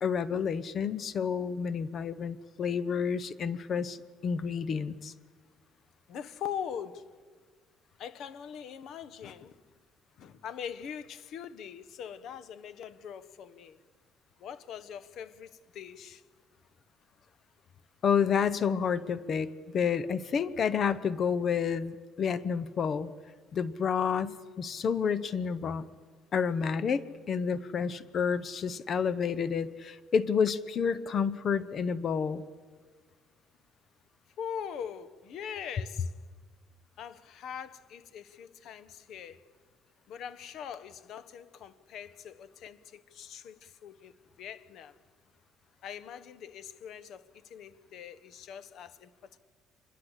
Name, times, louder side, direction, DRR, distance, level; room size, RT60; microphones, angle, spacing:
voice 1, 0.0-5.1 18.0-23.1 23.5-25.9 26.3-32.4, left 6 dB, 40° left, 0.8 m, -30 dB
voice 2, 6.1-7.1 8.0-9.6 10.2-13.8 14.4-16.2 34.4-36.1 37.0-39.4 40.1-45.0 45.8-49.4, left 8 dB, 55° left, 1.2 m, -42 dB
26.0 x 21.5 x 8.2 m
cardioid pair, 145°, 0 cm